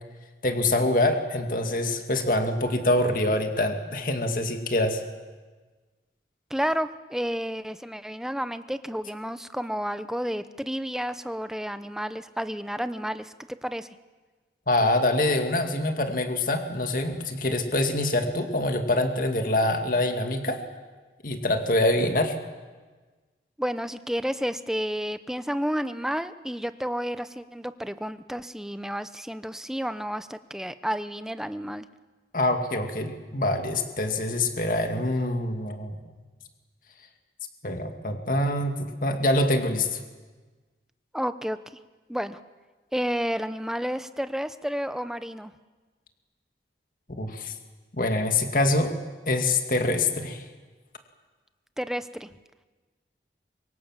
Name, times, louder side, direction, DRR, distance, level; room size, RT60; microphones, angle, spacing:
voice 1, 0.4-5.0 14.7-20.6 21.2-22.3 32.3-35.9 37.6-40.0 47.1-47.5 48.0-48.9 49.3-50.4, left 1 dB, 50° left, 5 dB, 2.3 m, -25 dB
voice 2, 6.5-13.9 23.6-31.8 41.1-41.6 42.1-42.4 42.9-45.5 51.8-52.3, equal, 5° right, 11 dB, 0.8 m, -31 dB
26.5 x 24.5 x 7.5 m, 1.3 s
head